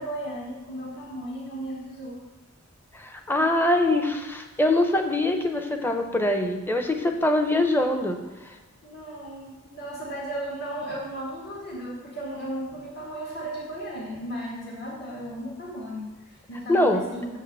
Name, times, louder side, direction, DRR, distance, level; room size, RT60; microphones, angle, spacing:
voice 1, 0.0-2.2 8.8-17.4, right 1 dB, 50° left, -4 dB, 1.8 m, -35 dB
voice 2, 2.9-8.2 8.4-8.5 16.7-17.0, left 1 dB, 10° left, 5 dB, 0.7 m, -23 dB
7.1 x 6.5 x 6.7 m, 1.1 s
head